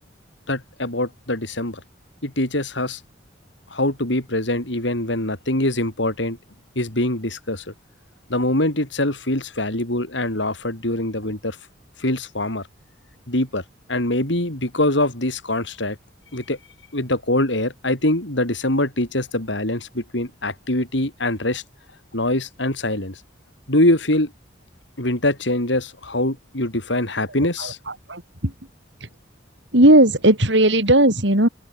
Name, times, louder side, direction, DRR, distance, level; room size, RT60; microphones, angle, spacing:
voice 1, 0.5-1.8 2.2-3.0 3.7-6.4 6.7-7.7 8.3-11.6 12.0-12.6 13.3-13.6 13.9-16.0 16.3-16.6 16.9-21.6 22.1-23.2 23.7-24.3 25.0-27.8, left 1 dB, 70° left, 4.8 m, -23 dB
voice 2, 28.1-28.5 29.0-29.1 29.7-31.5, right 1 dB, 70° right, 7.2 m, -16 dB
open air
head